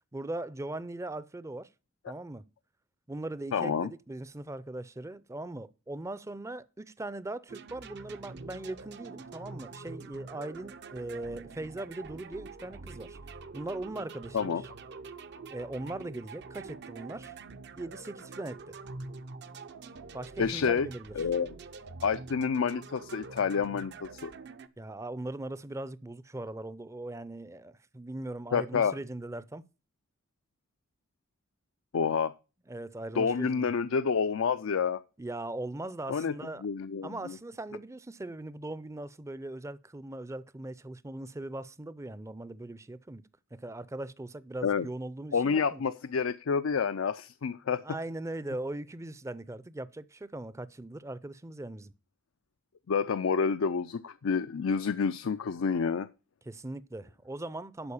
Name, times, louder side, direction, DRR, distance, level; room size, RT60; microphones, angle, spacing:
voice 1, 0.1-1.7 2.1-2.4 3.1-13.2 13.5-14.6 15.5-17.3 17.8-18.7 20.1-21.1 24.8-29.6 32.7-33.7 35.2-36.6 37.0-43.2 43.5-45.8 47.8-51.9 56.5-57.9, right 2 dB, 15° right, 0.5 m, -40 dB
voice 2, 3.5-3.9 14.3-14.6 20.4-20.9 21.2-21.5 22.0-24.3 28.5-29.0 31.9-32.3 33.1-35.0 36.1-36.3 36.6-37.4 44.6-44.9 45.3-47.8 52.9-56.1, left 6 dB, 80° left, 0.5 m, -28 dB
sound 1, 7.5-24.7, right 3 dB, 60° right, 0.7 m, -45 dB
11.5 x 4.6 x 7.0 m
head